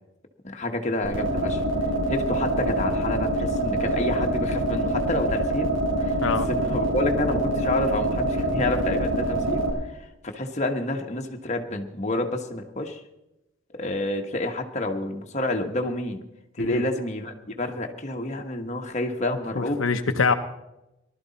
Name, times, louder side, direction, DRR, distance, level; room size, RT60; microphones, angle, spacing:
voice 1, 0.4-1.6 2.1-13.0 13.7-16.2 16.5-19.8, left 1 dB, 35° left, 3 dB, 1.2 m, -29 dB
sound 1, 1.0-9.7, right 1 dB, 80° right, 4.4 m, -25 dB
voice 2, 16.6-16.9 19.6-20.3, left 5 dB, 85° left, 7 dB, 0.8 m, -24 dB
19.0 x 12.0 x 4.1 m, 0.92 s
head